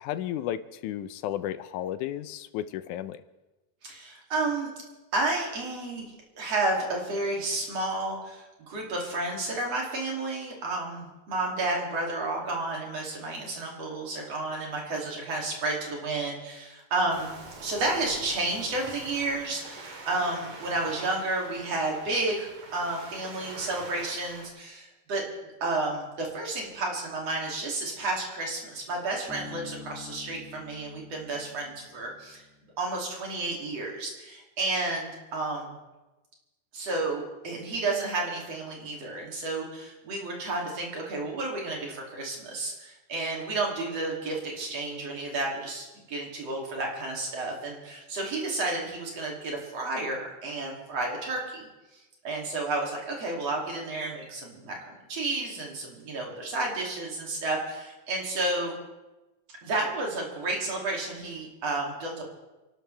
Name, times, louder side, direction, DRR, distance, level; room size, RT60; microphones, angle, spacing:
voice 1, 0.0-3.2, left 11 dB, 80° left, 13 dB, 2.1 m, -33 dB
voice 2, 3.8-4.7 5.1-17.3 17.6-25.3 25.6-32.4 32.8-35.8 36.7-52.0 52.2-58.8 59.6-62.2, right 2 dB, 55° right, -1 dB, 3.8 m, -31 dB
Waves surf, 17.1-24.5, right 3 dB, 85° right, 3.9 m, -45 dB
Bass guitar, 29.3-32.7, left 3 dB, 5° right, 1.2 m, -47 dB
29.5 x 12.5 x 3.4 m, 1.1 s
omnidirectional pair, 3.5 m